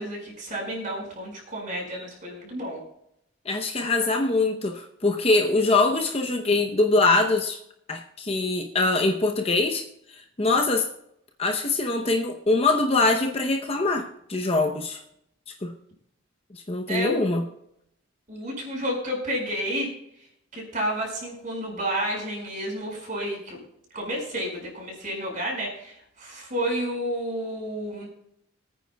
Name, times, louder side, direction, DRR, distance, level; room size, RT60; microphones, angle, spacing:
voice 1, 0.0-2.8 16.9-17.3 18.3-19.9 20.5-23.6 23.9-28.1, equal, 40° right, -1 dB, 5.2 m, -30 dB
voice 2, 3.5-7.6 7.9-9.8 10.4-10.9 11.4-15.0 15.6-15.7 16.5-17.4, left 3 dB, 30° left, 3 dB, 0.8 m, -23 dB
24.0 x 9.4 x 2.3 m, 0.76 s
head